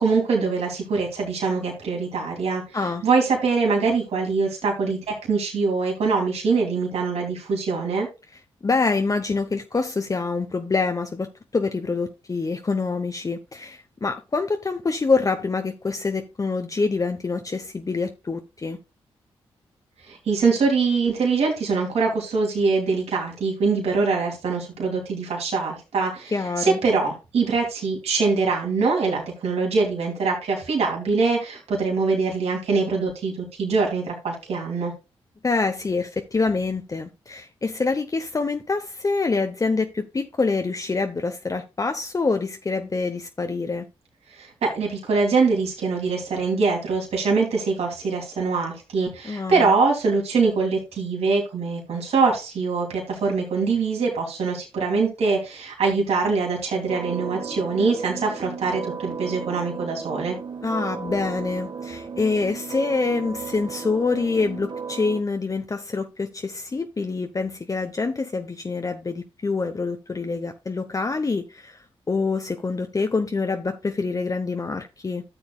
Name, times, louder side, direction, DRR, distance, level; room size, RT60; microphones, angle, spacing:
voice 1, 0.0-2.6 3.0-8.1 20.0-34.9 44.3-60.4, right 4 dB, 75° right, 2.8 m, -23 dB
voice 2, 8.6-18.8 26.3-26.8 35.4-43.9 49.2-49.8 60.6-75.2, left 4 dB, 35° left, 0.8 m, -26 dB
sound 1, 56.9-65.2, right 5 dB, 45° right, 1.0 m, -35 dB
13.0 x 7.0 x 2.3 m
supercardioid pair, 45°, 11 cm